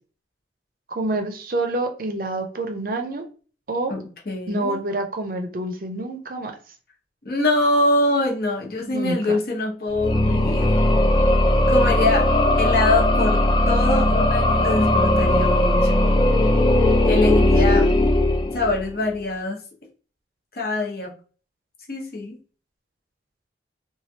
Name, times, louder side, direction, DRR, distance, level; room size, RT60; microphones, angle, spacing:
voice 1, 0.9-3.3 3.7-3.9 4.5-6.5 8.8-9.4 17.5-17.9, right 2 dB, 50° right, 4 dB, 0.5 m, -27 dB
voice 2, 3.9-4.8 7.2-10.7 11.7-12.3 12.6-16.2 17.0-17.8 18.5-19.6 20.5-21.1 21.9-22.4, left 2 dB, 55° left, 0 dB, 0.9 m, -24 dB
sound 1, 9.9-19.0, left 1 dB, 25° left, 0.4 m, -18 dB
3.2 x 2.3 x 2.8 m, 0.38 s
head